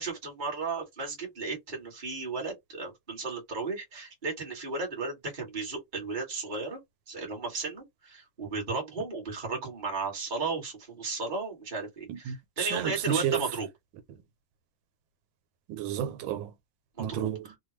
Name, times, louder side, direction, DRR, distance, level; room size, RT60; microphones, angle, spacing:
voice 1, 0.0-6.8 7.1-13.7 17.0-17.3, right 3 dB, 30° right, 1.4 m, -34 dB
voice 2, 12.1-13.4 14.1-14.2 15.7-16.5 17.0-17.6, right 10 dB, 90° right, 1.4 m, -32 dB
3.2 x 2.3 x 3.1 m
omnidirectional pair, 2.0 m